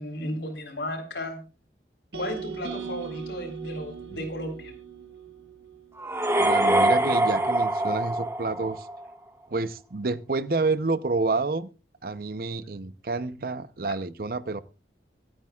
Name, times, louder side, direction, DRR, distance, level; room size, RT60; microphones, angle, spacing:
voice 1, 0.0-1.4 2.1-4.7, left 1 dB, 80° left, 4 dB, 4.0 m, -34 dB
sound 1, 2.1-6.3, right 7 dB, 75° right, 1.6 m, -39 dB
sound 2, 6.0-9.0, right 1 dB, 15° right, 1.3 m, -24 dB
voice 2, 6.4-8.9 9.5-11.7 12.0-14.6, right 3 dB, 55° right, 14 dB, 0.7 m, -29 dB
25.5 x 8.9 x 2.4 m, 0.33 s
head